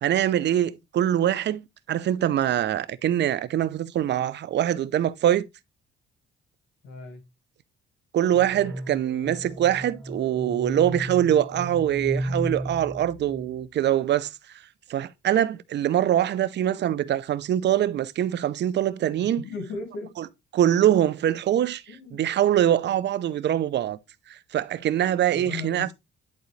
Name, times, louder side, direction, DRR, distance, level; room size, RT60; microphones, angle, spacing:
voice 1, 0.0-5.5 8.1-14.4 14.9-19.4 20.2-20.3 20.5-24.0 24.3-25.9, right 11 dB, 60° right, 0.6 m, -23 dB
voice 2, 6.8-7.2 19.4-20.1 21.9-22.3 25.3-25.9, left 3 dB, 85° left, 1.7 m, -36 dB
sound 1, 8.3-13.7, right 1 dB, 15° left, 2.2 m, -35 dB
10.5 x 3.9 x 3.2 m
cardioid pair, 90°, 20 cm